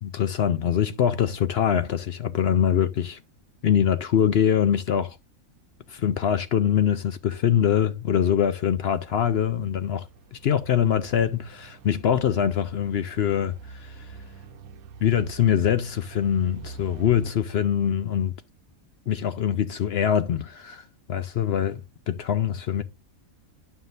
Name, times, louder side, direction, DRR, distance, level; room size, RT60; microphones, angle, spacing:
voice 1, 0.0-3.2 3.6-5.2 5.9-10.1 10.3-14.1 15.0-18.3 19.1-20.8 21.1-21.8 22.1-22.8, left 9 dB, 60° left, 0.7 m, -23 dB
sound 1, 7.9-17.3, right 4 dB, 85° right, 1.1 m, -46 dB
11.5 x 5.7 x 2.5 m
omnidirectional pair, 1.5 m